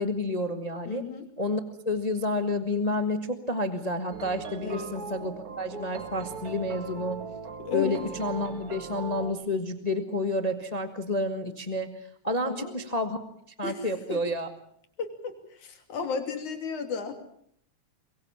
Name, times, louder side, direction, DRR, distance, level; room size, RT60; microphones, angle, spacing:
voice 1, 0.0-1.1 1.4-7.2 7.7-13.2 13.6-14.5, left 1 dB, 25° left, 8 dB, 0.9 m, -30 dB
voice 2, 0.9-1.3 4.6-4.9 7.6-8.0 12.4-12.7 13.6-14.2 15.0-17.1, left 5 dB, 75° left, 6 dB, 4.2 m, -34 dB
sound 1, 4.1-9.3, right 5 dB, 40° right, 1.4 m, -40 dB
23.0 x 22.5 x 7.4 m, 0.65 s
omnidirectional pair, 3.4 m